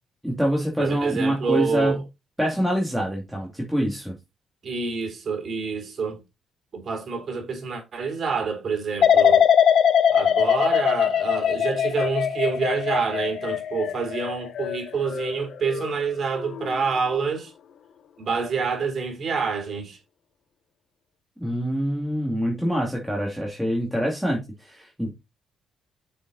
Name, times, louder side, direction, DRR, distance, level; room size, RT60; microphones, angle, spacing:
voice 1, 0.2-2.0 2.4-4.1 21.4-25.1, equal, 5° right, 2.4 m, -25 dB
voice 2, 0.8-2.0 4.6-6.2 6.7-9.4 10.1-17.5 18.2-20.0, right 5 dB, 50° right, 3.2 m, -27 dB
sound 1, 9.0-15.9 16.4-16.8, left 8 dB, 65° left, 0.8 m, -21 dB
6.7 x 5.5 x 4.0 m
cardioid pair, 90°, 0 cm